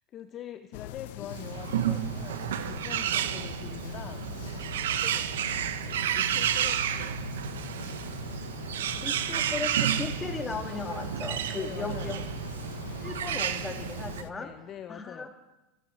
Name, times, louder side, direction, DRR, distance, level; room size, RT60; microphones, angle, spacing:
voice 1, 0.1-4.3 6.1-7.2 11.6-12.3 14.2-15.3, left 10 dB, 40° left, 9 dB, 0.7 m, -44 dB
sound 1, 0.7-14.3, left 14 dB, 75° left, 0.5 m, -42 dB
Bird, 1.3-14.2, right 10 dB, 90° right, 0.8 m, -31 dB
voice 2, 8.9-12.2 13.0-14.5 14.9-15.3, left 4 dB, 20° left, 3 dB, 2.4 m, -37 dB
26.0 x 10.0 x 4.6 m, 1.0 s
supercardioid pair, 110°, 0 cm